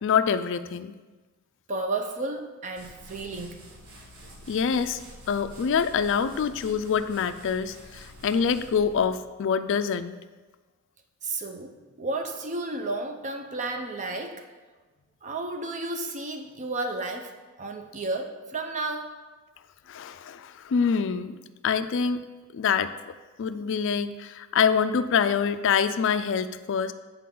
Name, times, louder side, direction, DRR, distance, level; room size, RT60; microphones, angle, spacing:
voice 1, 0.0-0.9 4.5-5.0 5.3-10.2 19.9-21.4 21.6-22.2 22.5-22.9 23.4-26.9, left 6 dB, 55° left, 12 dB, 0.3 m, -25 dB
voice 2, 1.7-3.6 11.2-11.7 12.0-14.5 15.2-17.3 17.6-19.1, right 2 dB, 35° right, 5 dB, 0.5 m, -32 dB
sound 1, 2.8-9.3, equal, 65° right, 1.3 m, -48 dB
8.4 x 4.6 x 3.8 m, 1.3 s
head